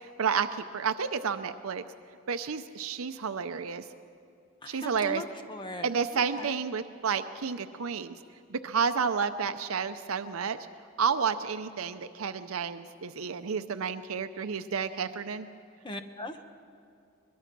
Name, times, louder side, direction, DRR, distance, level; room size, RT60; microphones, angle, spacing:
voice 1, 0.2-1.8 2.3-3.8 4.7-5.2 5.8-8.2 8.5-10.6 11.0-15.5, right 6 dB, 90° right, 10 dB, 0.6 m, -30 dB
voice 2, 4.6-5.8 15.8-16.4, left 1 dB, 20° left, 7 dB, 1.0 m, -39 dB
22.5 x 21.5 x 6.0 m, 2.5 s
head